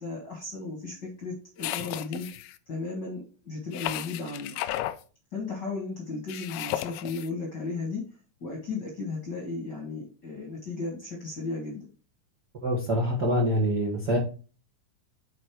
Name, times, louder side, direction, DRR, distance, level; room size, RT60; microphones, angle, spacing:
voice 1, 0.0-2.3 2.7-4.5 5.3-8.0 8.4-11.8, left 3 dB, 45° left, -2 dB, 1.5 m, -35 dB
sound 1, 1.6-2.6 3.7-5.0 6.3-7.3, left 14 dB, 85° left, 2.5 m, -34 dB
voice 2, 12.6-14.2, equal, 60° right, -3 dB, 1.0 m, -25 dB
7.7 x 4.3 x 4.6 m, 0.36 s
omnidirectional pair, 4.6 m